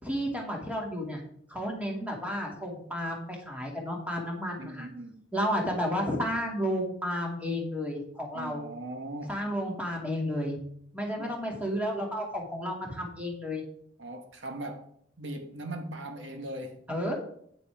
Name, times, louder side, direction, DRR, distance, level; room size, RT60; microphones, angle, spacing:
voice 1, 0.0-1.2 1.5-4.9 5.3-8.7 9.3-10.6 10.9-13.6 16.9-17.1, equal, 10° right, 2.4 m, -32 dB
voice 2, 4.6-5.3 8.3-9.3 11.1-11.4 14.0-14.8 15.2-16.8, right 1 dB, 75° right, 1.3 m, -39 dB
9.5 x 8.9 x 3.5 m
head